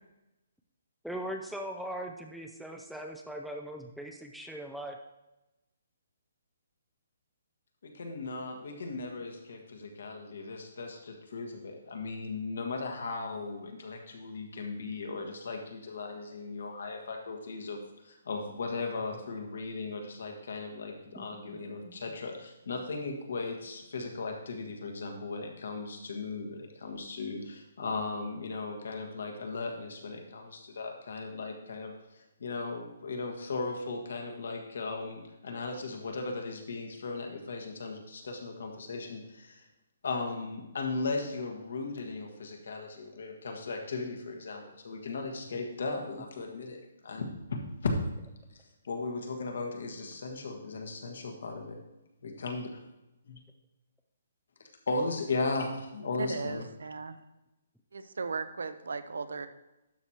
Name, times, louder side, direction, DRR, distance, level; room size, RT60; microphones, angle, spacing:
voice 1, 1.0-5.0 21.2-22.0 44.6-44.7, right 1 dB, ahead, 2 dB, 0.3 m, -40 dB
voice 2, 7.8-17.8 18.0-39.7 40.0-47.9 48.5-51.5 52.4-52.7 53.3-53.4 54.9-56.6, left 3 dB, 65° left, 3 dB, 1.5 m, -37 dB
voice 3, 56.2-57.2 57.9-59.5, right 4 dB, 85° right, 11 dB, 0.7 m, -36 dB
12.0 x 6.3 x 2.9 m, 0.97 s
hypercardioid pair, 175°, 0 cm